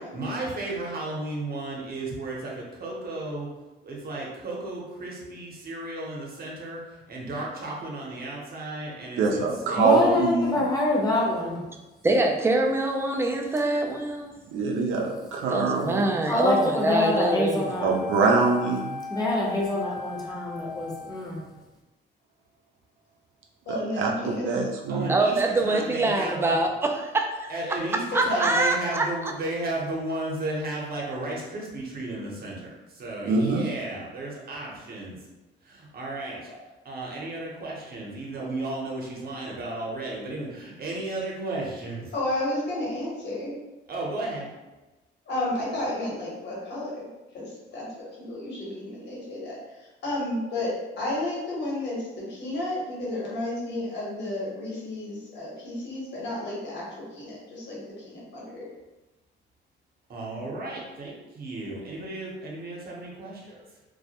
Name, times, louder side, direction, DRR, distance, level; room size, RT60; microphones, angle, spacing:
voice 1, 0.0-3.5 3.8-10.1 24.9-26.6 27.5-35.2 35.6-36.5 36.8-42.1 43.9-44.5 60.1-63.6, right 2 dB, 50° right, -3 dB, 0.8 m, -34 dB
voice 2, 9.2-10.6 14.5-16.1 17.8-18.9 23.7-25.1 33.3-33.7, right 4 dB, 85° right, 1 dB, 0.5 m, -24 dB
voice 3, 9.8-11.6 16.3-17.9 19.1-21.4, left 2 dB, 20° left, -4 dB, 0.7 m, -25 dB
voice 4, 12.0-14.3 15.5-17.7 25.1-27.8 28.1-29.3, right 2 dB, 10° right, 2 dB, 0.3 m, -24 dB
Wind instrument woodwind instrument, 16.0-21.5, left 4 dB, 45° left, 0.9 m, -38 dB
voice 5, 23.7-24.7 28.1-28.6 36.5-36.6 42.1-43.5 45.3-58.7, left 1 dB, 60° left, -6 dB, 1.1 m, -32 dB
2.3 x 2.1 x 2.8 m, 1.1 s
cardioid pair, 90°, 20 cm